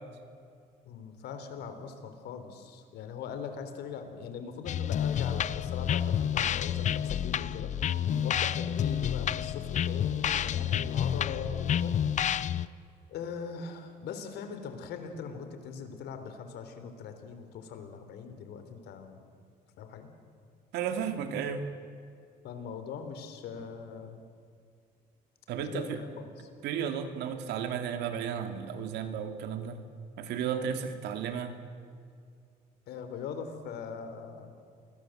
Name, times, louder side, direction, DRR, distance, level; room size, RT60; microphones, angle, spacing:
voice 1, 0.9-7.7 8.2-12.0 13.1-19.2 19.8-20.1 22.4-24.2 25.6-26.5 27.2-27.3 32.9-34.5, left 6 dB, 75° left, 8 dB, 3.6 m, -41 dB
sound 1, 4.7-12.7, left 9 dB, 45° left, 0.7 m, -29 dB
voice 2, 20.7-21.7 25.5-26.0 26.6-29.8 30.2-31.5, right 8 dB, 85° right, 7 dB, 2.6 m, -33 dB
28.5 x 21.0 x 7.9 m, 2.3 s
cardioid pair, 110°, 17 cm